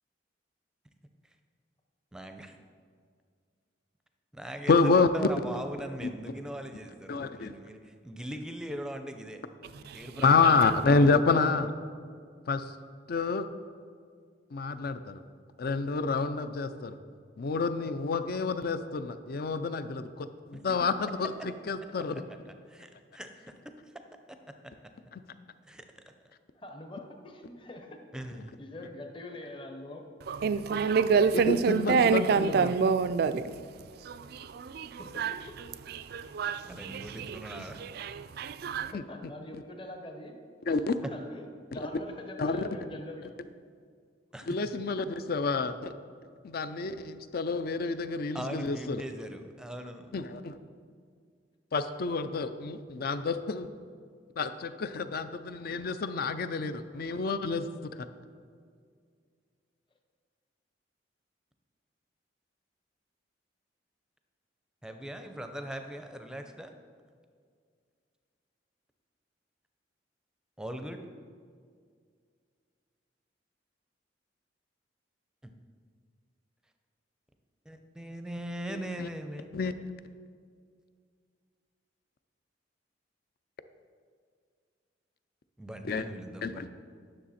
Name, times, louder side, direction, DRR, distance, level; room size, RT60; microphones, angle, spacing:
voice 1, 2.1-2.6 4.3-9.4 9.9-11.4 20.5-20.6 22.1-22.2 22.7-23.7 24.3-24.4 25.7-25.8 28.1-28.5 36.6-37.8 44.3-44.6 48.3-50.1 64.8-66.7 70.6-71.0 75.4-75.5 77.7-79.6 85.6-86.7, right 1 dB, 5° right, 0.5 m, -40 dB
voice 2, 4.7-5.1 6.0-6.1 7.1-7.5 10.2-11.7 12.5-12.6 13.1-13.5 14.5-15.2 15.6-17.0 17.4-22.1 31.5-32.7 38.9-39.0 40.7-40.9 41.7-41.8 42.4-42.6 44.5-45.9 46.4-49.0 50.1-50.6 51.7-53.7 54.4-57.7 78.7-79.1 79.5-79.7 85.9-86.0 86.4-86.7, left 4 dB, 55° left, 0.4 m, -28 dB
voice 3, 9.7-10.0 30.3-33.4 34.0-35.3 35.9-38.9, right 5 dB, 55° right, 0.3 m, -28 dB
voice 4, 26.5-28.0 28.6-30.6 34.4-34.5 35.0-35.4 35.8-35.9 38.8-40.3 40.7-40.8 41.0-41.4 41.7-43.3, left 1 dB, 30° left, 0.8 m, -44 dB
10.0 x 6.4 x 4.2 m
head